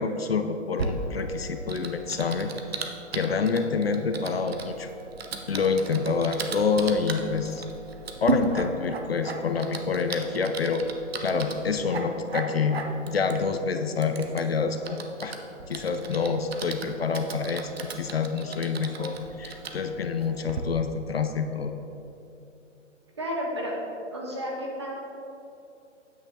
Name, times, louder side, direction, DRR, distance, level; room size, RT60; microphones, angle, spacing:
voice 1, 0.0-4.9 5.5-7.6 8.2-10.8 11.2-15.4 15.7-17.7 18.0-21.7, left 5 dB, 55° left, 7 dB, 0.6 m, -27 dB
Typing, 0.8-20.6, right 3 dB, 55° right, 0.9 m, -36 dB
voice 2, 23.2-23.8 24.1-24.9, equal, 25° right, -2 dB, 0.8 m, -31 dB
9.2 x 7.9 x 3.7 m, 2.8 s
hypercardioid pair, 175°, 37 cm